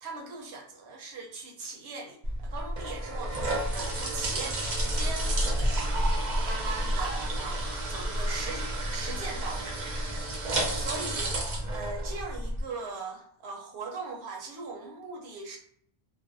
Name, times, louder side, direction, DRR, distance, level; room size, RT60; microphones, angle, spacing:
voice 1, 0.0-5.3 5.6-6.0 6.4-9.8 10.7-11.4 11.7-15.6, right 3 dB, 80° right, 1 dB, 0.9 m, -40 dB
sound 1, 2.2-12.6, right 1 dB, 55° right, 0.6 m, -30 dB
2.4 x 2.1 x 2.5 m, 0.66 s
omnidirectional pair, 1.1 m